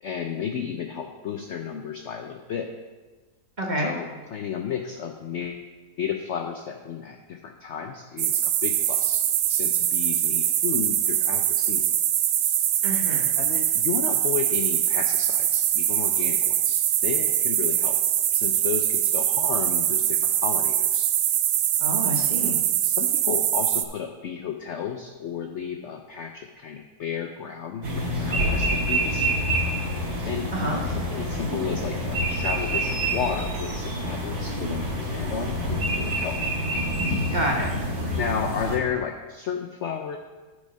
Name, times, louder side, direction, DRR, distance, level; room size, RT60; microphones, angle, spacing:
voice 1, 0.0-2.7 3.8-5.7 6.0-9.2 9.5-11.9 12.4-12.6 13.4-18.0 18.3-21.1 22.4-22.6 22.8-29.3 30.2-36.4 38.2-40.2, left 7 dB, 65° left, 4 dB, 0.7 m, -33 dB
voice 2, 3.6-3.9 12.8-13.3 21.8-22.6 30.5-30.8 37.3-37.7, right 1 dB, 30° right, -1 dB, 1.1 m, -28 dB
sound 1, 8.2-23.8, right 11 dB, 90° right, 1.2 m, -23 dB
sound 2, 27.8-38.8, equal, 75° right, 2.1 m, -27 dB
9.7 x 5.0 x 5.3 m, 1.3 s
omnidirectional pair, 1.7 m